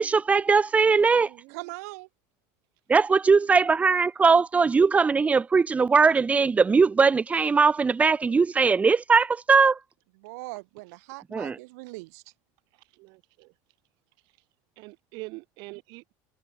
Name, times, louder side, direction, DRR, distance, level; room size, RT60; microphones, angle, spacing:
voice 1, 0.0-1.3 2.9-9.8 11.3-11.6, right 5 dB, 15° right, 1.2 m, -20 dB
voice 2, 0.9-1.7 12.9-13.5 14.8-16.1, right 25 dB, 65° right, 5.9 m, -44 dB
voice 3, 1.5-2.1 10.2-12.2, right 25 dB, 85° right, 2.8 m, -40 dB
cardioid pair, 140°, 8 cm